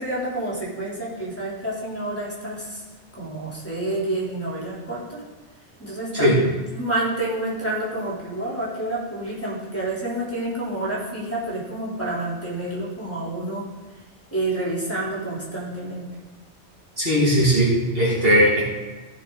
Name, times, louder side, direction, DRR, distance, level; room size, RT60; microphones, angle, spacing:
voice 1, 0.0-2.8 3.1-5.2 5.8-6.4 6.7-13.6 14.3-16.1, right 1 dB, 10° left, -6 dB, 3.6 m, -28 dB
voice 2, 17.0-18.6, equal, 55° right, -5 dB, 2.5 m, -18 dB
15.0 x 5.9 x 4.0 m, 1.2 s
omnidirectional pair, 1.2 m